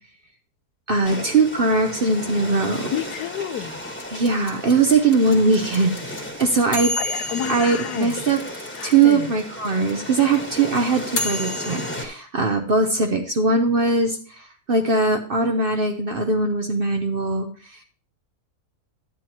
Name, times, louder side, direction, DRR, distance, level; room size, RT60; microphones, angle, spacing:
voice 1, 0.9-2.9 4.1-5.9 6.4-7.0 7.5-8.4 8.8-17.8, right 3 dB, 50° right, 0.7 m, -20 dB
sound 1, 1.0-12.0, left 1 dB, 10° left, 1.2 m, -35 dB
voice 2, 2.9-3.8 7.0-8.3 8.8-9.3, left 9 dB, 85° left, 1.2 m, -30 dB
sound 2, 4.0-9.1 9.4-9.5 9.6-12.0, left 2 dB, 40° left, 1.5 m, -30 dB
10.5 x 9.1 x 2.9 m
omnidirectional pair, 1.7 m